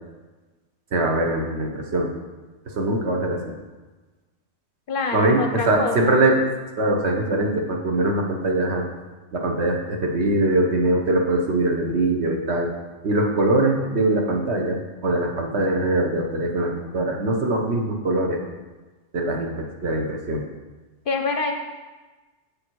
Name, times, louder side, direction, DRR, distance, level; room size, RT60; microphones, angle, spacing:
voice 1, 0.9-2.1 2.7-3.4 5.1-6.4 6.8-8.8 9.3-12.7 13.0-18.4 19.1-20.4, right 2 dB, 65° right, 1 dB, 1.3 m, -22 dB
voice 2, 4.9-6.2 21.1-21.5, left 4 dB, 55° left, 5 dB, 0.7 m, -26 dB
7.0 x 6.6 x 4.6 m, 1.2 s
omnidirectional pair, 1.2 m